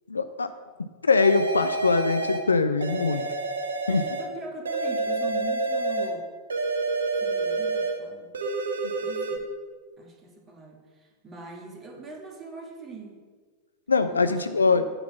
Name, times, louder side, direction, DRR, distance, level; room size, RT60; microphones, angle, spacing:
voice 1, 0.1-0.5 1.0-3.2 3.9-4.0 13.9-14.8, left 4 dB, 75° left, 10 dB, 0.4 m, -22 dB
sound 1, 1.2-2.5 2.8-4.3 4.7-6.2 6.5-8.0 8.3-9.4, right 3 dB, 70° right, 0.9 m, -28 dB
voice 2, 3.1-3.4 3.9-6.3 7.2-8.3 9.0-9.5 10.0-13.2 14.1-14.9, right 4 dB, 25° right, 1 dB, 1.7 m, -42 dB
8.9 x 4.0 x 7.1 m, 1.5 s
figure-of-eight pair, 90°, 0 cm